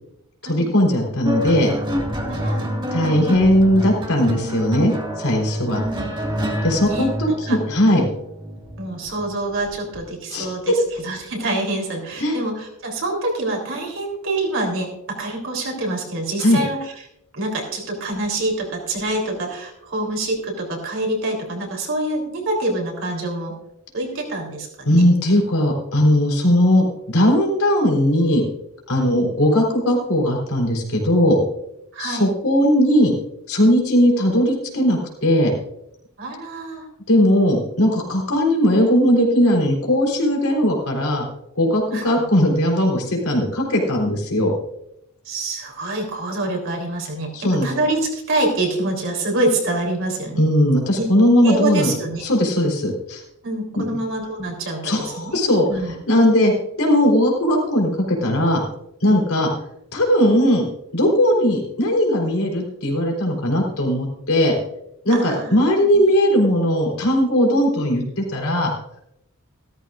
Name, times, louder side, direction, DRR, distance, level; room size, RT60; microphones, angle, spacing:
voice 1, 0.4-1.7 2.9-5.8 6.6-8.1 10.3-10.7 12.2-12.4 16.4-16.6 24.8-28.5 28.9-31.4 32.0-33.1 33.5-35.5 37.1-41.3 41.6-44.5 47.3-47.7 50.4-51.9 52.2-53.2 53.7-54.0 54.8-56.5 56.8-58.6 59.0-59.5 59.9-60.6 60.9-64.6 65.0-68.7, equal, 75° left, 0 dB, 3.8 m, -18 dB
sound 1, 1.2-10.0 11.0-11.2, equal, 20° right, 1.8 m, -28 dB
voice 2, 2.3-3.1 5.6-6.1 6.8-7.1 7.5-7.6 8.8-16.9 17.3-23.5 23.9-25.0 29.0-29.2 31.9-32.2 36.2-36.9 41.9-42.1 45.3-50.4 50.9-51.0 51.4-52.3 53.4-55.4 55.7-55.9 65.1-65.5 65.8-66.0, right 2 dB, 60° right, 1 dB, 3.6 m, -26 dB
15.5 x 13.5 x 2.5 m, 0.79 s
head